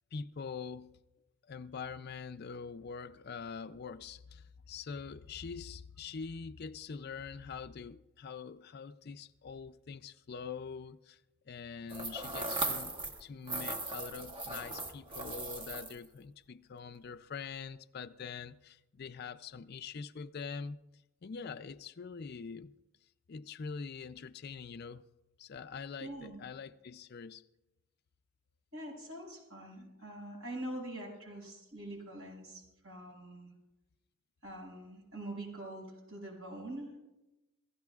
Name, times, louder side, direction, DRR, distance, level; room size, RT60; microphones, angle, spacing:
voice 1, 0.1-0.9 1.4-11.2 11.5-20.8 21.2-22.7 23.3-25.1 25.4-27.4, left 5 dB, 45° left, 0.4 m, -44 dB
sound 1, 11.9-13.2 13.5-16.1, right 2 dB, 25° right, 1.3 m, -38 dB
voice 2, 26.0-26.4 28.7-33.5 34.4-37.0, right 1 dB, 70° right, 6.6 m, -44 dB
28.0 x 15.5 x 2.4 m
head